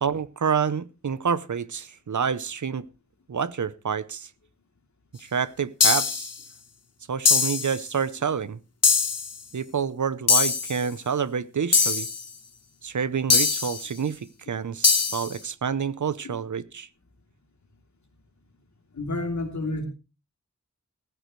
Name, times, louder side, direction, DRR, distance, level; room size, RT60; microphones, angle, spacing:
voice 1, 0.0-2.9 3.3-4.3 5.2-6.3 7.1-8.6 9.5-12.1 12.8-16.9, right 6 dB, 80° right, 0.8 m, -28 dB
sound 1, 5.8-6.3 7.3-7.8 8.8-9.3 10.3-10.8 11.7-12.2 13.3-13.8 14.8-15.3, left 5 dB, 55° left, 1.0 m, -21 dB
voice 2, 18.9-19.8, left 2 dB, 75° left, 3.0 m, -30 dB
14.5 x 14.5 x 3.2 m
wide cardioid pair, 75°, 29 cm